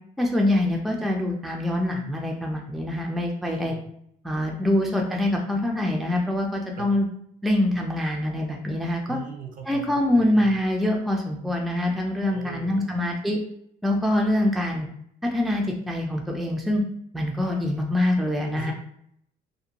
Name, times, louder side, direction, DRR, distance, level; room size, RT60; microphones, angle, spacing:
voice 1, 0.2-3.7 4.2-7.1 7.4-9.2 9.7-13.4 13.8-14.9 15.2-16.8 17.1-18.7, left 1 dB, ahead, 1 dB, 0.4 m, -24 dB
voice 2, 3.4-3.8 6.8-6.9 9.1-9.8 10.1-10.5 12.3-12.9 18.5-18.7, right 7 dB, 55° right, 3 dB, 0.6 m, -39 dB
2.5 x 2.1 x 2.8 m, 0.70 s
cardioid pair, 110°, 17 cm